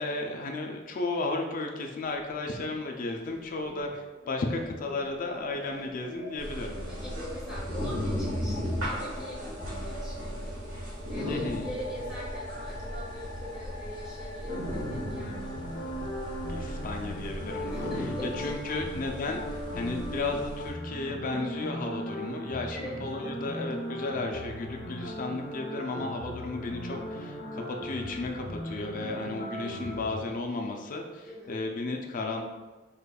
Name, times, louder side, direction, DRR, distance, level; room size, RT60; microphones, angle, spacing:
voice 1, 0.0-6.8 11.3-11.6 16.5-32.4, left 2 dB, 45° left, 2 dB, 0.4 m, -34 dB
sound 1, 2.0-2.7 3.0-21.1, equal, 35° right, 0.9 m, -45 dB
sound 2, 6.4-20.7, equal, 75° right, 1.2 m, -36 dB
voice 2, 6.9-15.9 17.6-18.8 22.7-22.9 29.3-29.7 31.2-31.5, left 1 dB, 5° right, -8 dB, 1.1 m, -43 dB
sound 3, 14.5-30.2, equal, 65° left, 0.8 m, -38 dB
5.0 x 2.4 x 2.2 m, 1.2 s
head